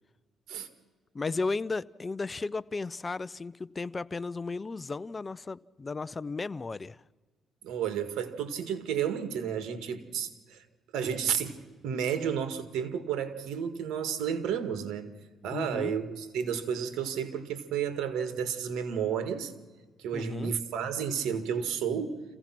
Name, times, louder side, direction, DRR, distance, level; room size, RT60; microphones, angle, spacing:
voice 1, 1.1-7.0 15.5-15.9 20.1-20.5, left 3 dB, 25° left, 0.5 m, -34 dB
voice 2, 7.6-10.6 10.9-15.1 15.4-19.5 20.0-22.2, right 8 dB, 85° right, 2.0 m, -32 dB
27.0 x 16.0 x 6.0 m
cardioid pair, 90°, 0 cm